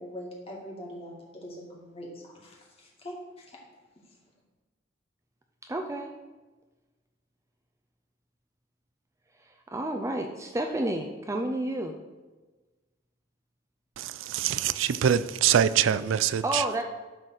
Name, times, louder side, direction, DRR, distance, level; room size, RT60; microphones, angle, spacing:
voice 1, 0.0-3.6 4.0-4.2, equal, 30° left, 2.2 m, -43 dB
voice 2, 5.6-6.1 9.3-11.9 16.4-16.8, right 1 dB, 15° right, 0.5 m, -31 dB
voice 3, 14.0-16.6, right 9 dB, 80° right, 0.4 m, -24 dB
12.0 x 4.1 x 6.3 m
head